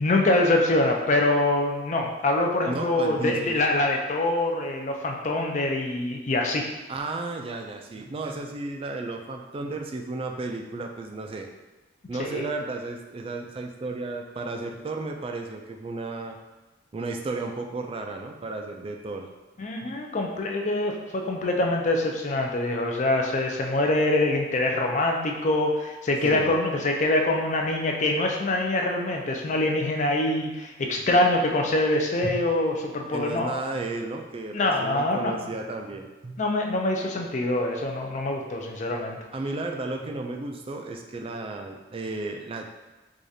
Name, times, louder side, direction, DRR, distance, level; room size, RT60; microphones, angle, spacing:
voice 1, 0.0-6.7 12.2-12.5 19.6-33.6 34.5-35.3 36.4-39.2, left 2 dB, 40° left, 2 dB, 0.4 m, -24 dB
voice 2, 2.6-3.6 6.9-11.5 12.1-16.4 16.9-19.3 19.8-19.9 26.2-26.5 32.2-32.4 33.1-36.4 39.3-42.7, right 3 dB, 30° right, 3 dB, 0.3 m, -33 dB
4.8 x 2.4 x 2.7 m, 1.1 s
head